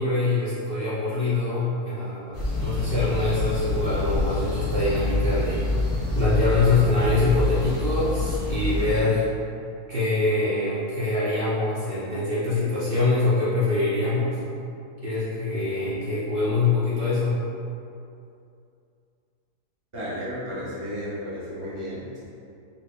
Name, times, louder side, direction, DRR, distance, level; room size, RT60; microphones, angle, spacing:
voice 1, 0.0-5.6 6.1-9.2 9.9-14.4 15.0-17.4, left 2 dB, 80° right, -10 dB, 0.5 m, -24 dB
sound 1, 2.3-9.0, left 2 dB, 45° left, 0.8 m, -26 dB
voice 2, 19.9-22.3, equal, 30° right, -10 dB, 0.6 m, -33 dB
4.2 x 2.5 x 2.2 m, 2.6 s
omnidirectional pair, 1.7 m